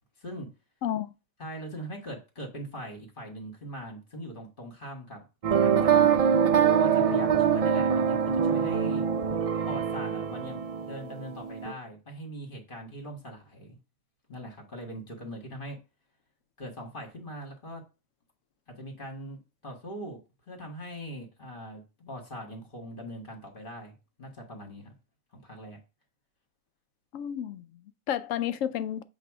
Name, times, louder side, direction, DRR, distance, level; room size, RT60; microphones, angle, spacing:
voice 1, 0.8-1.1 27.1-29.0, left 10 dB, 75° left, 0.9 m, -32 dB
voice 2, 1.4-5.2 5.5-6.2 6.7-9.1 9.7-13.8 14.3-15.8 16.6-17.8 18.8-20.2 20.5-24.9 25.3-25.8, equal, 40° left, 1.9 m, -41 dB
sound 1, 5.4-11.7, right 7 dB, 70° right, 0.3 m, -24 dB
8.2 x 2.8 x 4.8 m
omnidirectional pair, 1.4 m